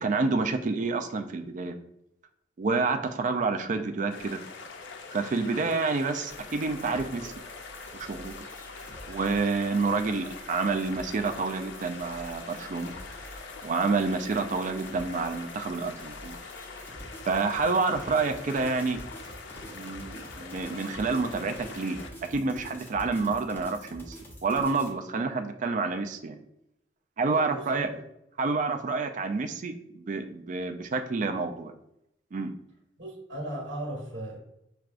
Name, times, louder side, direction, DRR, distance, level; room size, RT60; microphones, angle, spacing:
voice 1, 0.0-1.8 2.6-4.4 5.1-7.3 7.9-8.3 9.1-12.9 13.6-16.4 17.3-19.0 19.6-22.0 22.3-24.2 24.4-26.4 27.2-27.9 28.4-31.7 32.3-32.5, right 4 dB, 45° right, 7 dB, 0.3 m, -28 dB
sound 1, 4.1-22.1, left 4 dB, 85° left, 0.4 m, -44 dB
sound 2, 6.3-24.9, equal, 10° left, 0.7 m, -47 dB
voice 2, 27.3-27.9 33.0-34.4, right 1 dB, 80° right, -2 dB, 1.4 m, -37 dB
6.0 x 2.3 x 2.4 m, 0.81 s
head